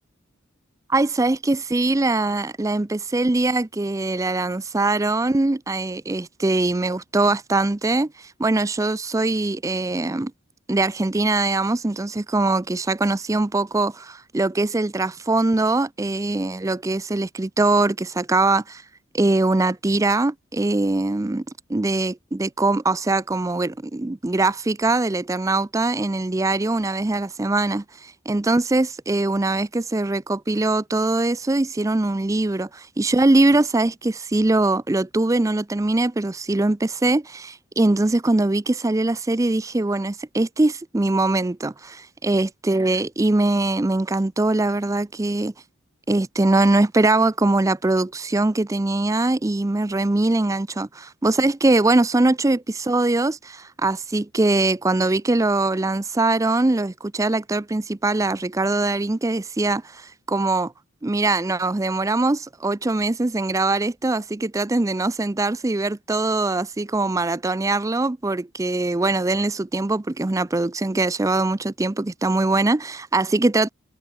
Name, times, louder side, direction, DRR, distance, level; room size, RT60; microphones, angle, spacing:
voice 1, 0.9-10.3 10.7-18.8 19.1-21.4 21.7-45.5 46.1-60.7 61.0-73.7, right 2 dB, 15° right, 0.4 m, -22 dB
head